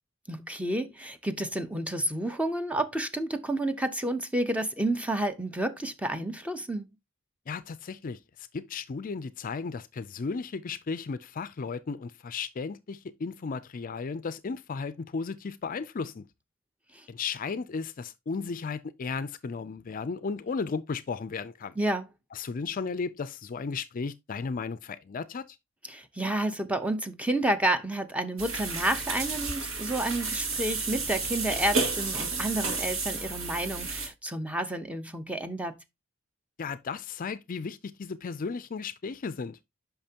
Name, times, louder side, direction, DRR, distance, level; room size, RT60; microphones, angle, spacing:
voice 1, 0.3-6.9 16.9-17.0 21.8-22.1 25.9-35.8, right 1 dB, 5° right, 0.8 m, -30 dB
voice 2, 7.5-16.3 17.1-21.7 22.3-25.6 36.6-39.6, left 5 dB, 40° left, 0.4 m, -35 dB
sound 1, 28.4-34.1, right 4 dB, 75° right, 2.1 m, -31 dB
8.8 x 5.8 x 2.8 m
head